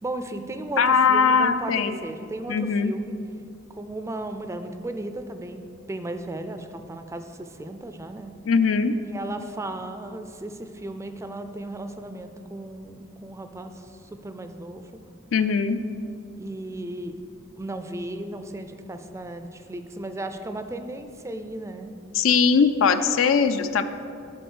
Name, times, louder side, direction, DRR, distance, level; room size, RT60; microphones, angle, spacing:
voice 1, 0.0-3.2 3.7-8.3 9.0-14.9 16.4-17.2 17.5-21.9, right 1 dB, 15° right, 8 dB, 0.4 m, -35 dB
voice 2, 0.8-2.0 2.5-2.9 8.5-9.0 15.3-15.8 22.1-23.8, left 5 dB, 75° left, 10 dB, 0.4 m, -20 dB
8.0 x 5.0 x 6.2 m, 2.5 s
head